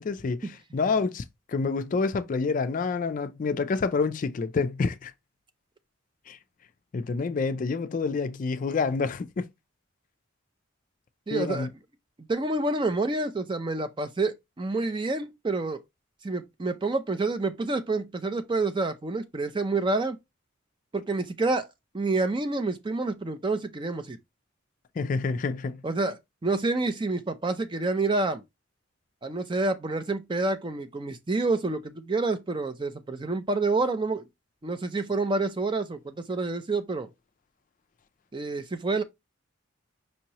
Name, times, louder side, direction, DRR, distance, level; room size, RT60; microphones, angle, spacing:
voice 1, 0.0-5.1 6.3-6.4 6.9-9.5 11.3-11.7 25.0-25.9, left 4 dB, 40° left, 0.3 m, -28 dB
voice 2, 11.3-11.7 12.2-15.8 16.2-20.2 20.9-21.7 21.9-24.2 25.8-26.2 26.4-28.4 29.2-34.3 34.6-37.1 38.3-39.0, right 3 dB, 25° right, 0.4 m, -28 dB
5.3 x 2.9 x 2.8 m
head